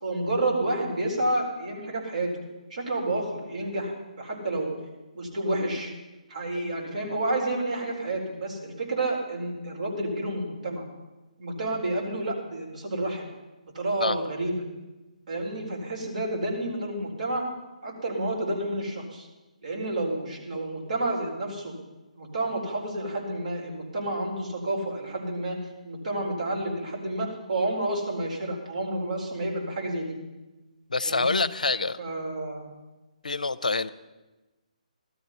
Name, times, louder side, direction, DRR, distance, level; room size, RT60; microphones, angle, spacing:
voice 1, 0.0-2.3 2.7-4.7 5.1-5.9 6.3-10.8 11.4-13.3 13.7-14.6 15.3-17.5 17.8-19.3 19.6-21.7 22.2-25.6 25.8-30.2 31.0-31.4 32.0-32.7, right 2 dB, 70° right, -1 dB, 4.2 m, -30 dB
voice 2, 30.9-32.0 33.2-33.9, left 3 dB, 80° left, 14 dB, 0.6 m, -26 dB
15.5 x 12.5 x 5.6 m, 1.1 s
figure-of-eight pair, 145°, 4 cm